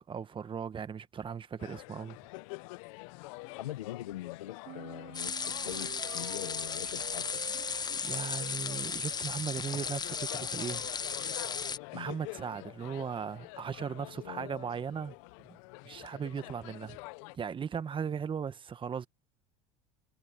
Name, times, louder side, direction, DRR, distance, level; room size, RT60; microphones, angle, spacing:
voice 1, 0.1-2.2 8.0-10.9 11.9-15.1 15.5-15.6 15.8-17.0 17.3-19.1, right 7 dB, 30° right, 1.4 m, -37 dB
sound 1, 1.6-17.4, left 25 dB, 70° left, 0.8 m, -47 dB
voice 2, 3.6-7.4 11.9-12.1 14.0-14.5 16.4-16.5, left 14 dB, 90° left, 1.4 m, -43 dB
sound 2, 4.7-9.7, right 12 dB, 45° right, 1.4 m, -50 dB
sound 3, 5.1-11.8, left 6 dB, 25° left, 0.9 m, -35 dB
hypercardioid pair, 90°, 18 cm